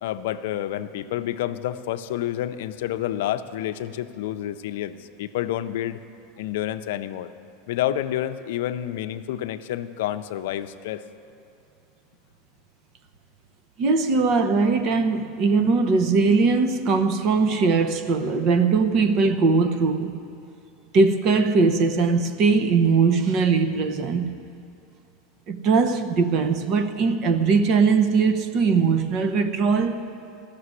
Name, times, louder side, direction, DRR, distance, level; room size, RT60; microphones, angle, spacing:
voice 1, 0.0-6.0 6.4-7.3 7.7-11.0, left 12 dB, 75° left, 0.5 m, -29 dB
voice 2, 13.8-20.1 20.9-24.3 25.5-30.0, right 4 dB, 45° right, 0.8 m, -20 dB
14.0 x 6.7 x 9.6 m
supercardioid pair, 135°, 0 cm